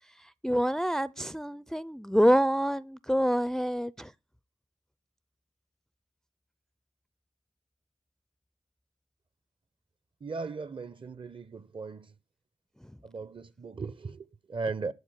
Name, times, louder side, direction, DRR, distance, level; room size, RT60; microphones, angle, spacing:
voice 1, 0.4-4.1, equal, 5° left, 0.4 m, -26 dB
voice 2, 10.2-12.1 13.0-14.9, right 4 dB, 45° right, 0.8 m, -37 dB
11.0 x 4.5 x 8.1 m
supercardioid pair, 45°, 12 cm